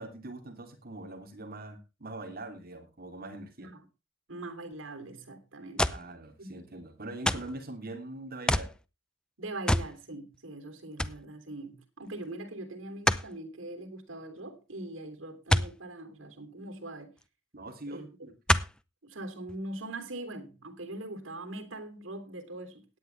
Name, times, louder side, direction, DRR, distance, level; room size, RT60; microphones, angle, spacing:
voice 1, 0.0-3.7 5.9-8.7 17.5-18.3, right 2 dB, 50° right, 3.2 m, -43 dB
voice 2, 4.3-6.0 6.4-6.6 9.4-17.1 17.9-18.3 19.0-22.8, right 2 dB, 90° right, 3.2 m, -42 dB
sound 1, 5.8-6.1 7.3-7.6 8.5-8.8 9.7-10.0 10.3-10.4 11.0-11.2 13.1-13.3 15.5-15.8 17.2-17.3 18.5-18.8 19.5-19.6, left 1 dB, 5° left, 0.6 m, -26 dB
17.0 x 9.8 x 3.3 m
head